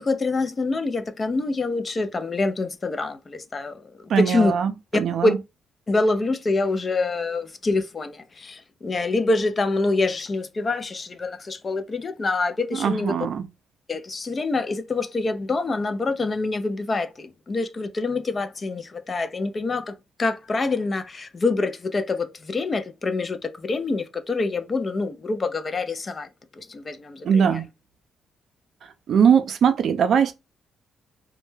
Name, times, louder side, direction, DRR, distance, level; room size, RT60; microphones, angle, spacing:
voice 1, 0.0-4.5 5.2-5.3 5.9-13.1 13.9-26.3 26.6-27.6, left 3 dB, 35° left, 0.4 m, -26 dB
voice 2, 4.1-5.4 12.7-13.5 27.2-27.7 29.1-30.3, right 7 dB, 60° right, 0.4 m, -21 dB
2.2 x 2.1 x 3.1 m
cardioid pair, 90°, 0 cm